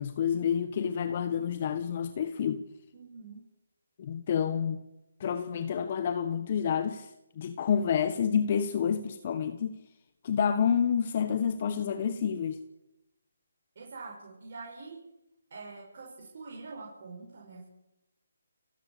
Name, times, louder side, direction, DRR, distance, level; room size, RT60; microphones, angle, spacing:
voice 1, 0.0-2.6 4.0-4.8 5.2-7.1 7.4-9.8 10.2-12.6, left 7 dB, 40° left, 11 dB, 1.3 m, -29 dB
voice 2, 2.9-3.4 13.7-15.0 15.5-17.7, right 4 dB, 50° right, -3 dB, 6.7 m, -45 dB
30.0 x 12.0 x 8.5 m, 0.93 s
hypercardioid pair, 155°, 0 cm